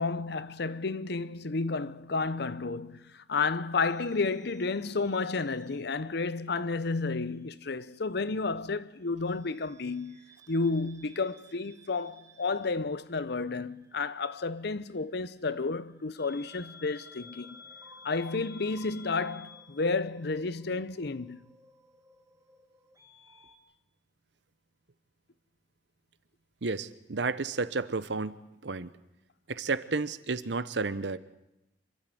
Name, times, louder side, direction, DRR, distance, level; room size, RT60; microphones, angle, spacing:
voice 1, 0.0-17.6 18.0-21.4, left 3 dB, 65° left, 0.8 m, -31 dB
sound 1, 3.8-6.6 6.9-8.1 9.3-23.6, left 3 dB, 20° right, 1.9 m, -55 dB
voice 2, 26.6-28.3 28.6-28.9 29.5-31.2, right 3 dB, 75° right, 0.9 m, -31 dB
26.5 x 12.5 x 9.3 m
head